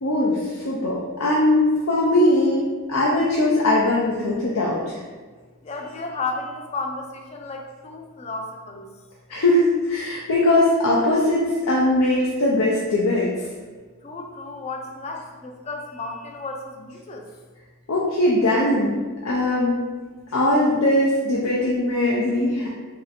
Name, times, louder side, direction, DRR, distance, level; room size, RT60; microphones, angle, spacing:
voice 1, 0.0-5.0 9.3-13.3 17.9-19.8 20.3-22.7, left 1 dB, 80° left, -5 dB, 0.6 m, -20 dB
voice 2, 5.6-8.9 14.0-17.3, left 3 dB, 30° left, 3 dB, 0.4 m, -33 dB
3.2 x 2.7 x 4.1 m, 1.4 s
head